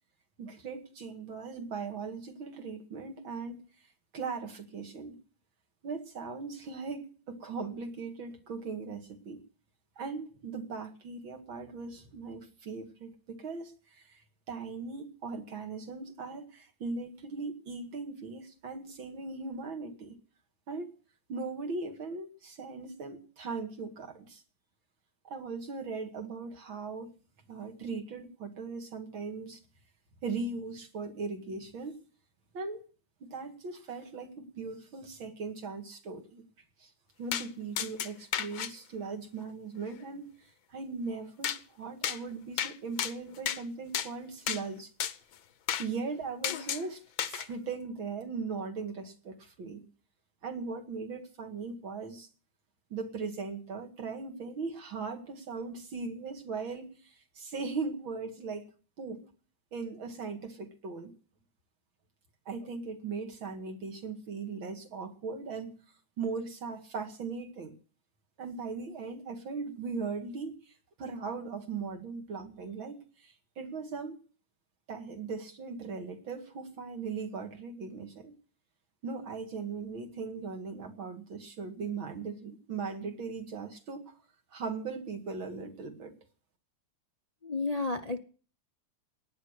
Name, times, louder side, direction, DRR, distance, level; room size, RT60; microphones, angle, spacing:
voice 1, 0.4-3.6 4.1-5.2 5.8-9.4 10.0-14.2 14.5-20.1 20.7-20.9 21.3-24.4 25.2-27.1 27.5-29.6 30.2-32.0 32.5-32.8 33.2-36.4 36.8-36.9 37.2-40.3 40.7-44.9 45.8-49.8 50.4-52.3 52.9-58.6 59.0-59.3 59.7-61.1 62.5-65.8 66.2-67.7 68.4-70.7 71.0-74.2 74.9-78.3 79.0-84.1 84.5-86.1, right 4 dB, 80° right, 3.0 m, -39 dB
sound 1, 37.3-37.5 37.8-38.7 41.4-41.6 42.0-42.2 42.6-42.7 43.0-43.6 43.9-44.1 44.5-44.6 45.0-45.1 45.7-45.9 46.4-46.8 47.2-47.5, left 10 dB, 80° left, 1.7 m, -32 dB
voice 2, 87.4-88.2, left 3 dB, 40° left, 0.5 m, -31 dB
18.0 x 10.0 x 6.6 m
omnidirectional pair, 2.2 m